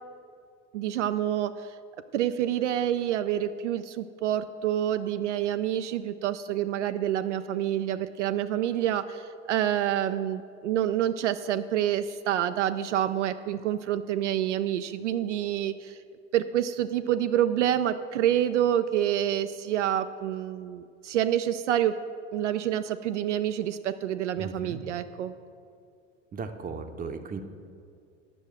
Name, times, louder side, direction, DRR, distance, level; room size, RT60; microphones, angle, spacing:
voice 1, 0.7-1.7 2.1-16.0 16.3-22.0 22.3-25.3, right 11 dB, 70° right, 9 dB, 0.5 m, -27 dB
voice 2, 24.4-24.8 26.3-27.4, right 4 dB, 25° right, 8 dB, 0.7 m, -36 dB
9.9 x 6.3 x 7.4 m, 2.4 s
figure-of-eight pair, 75°, 37 cm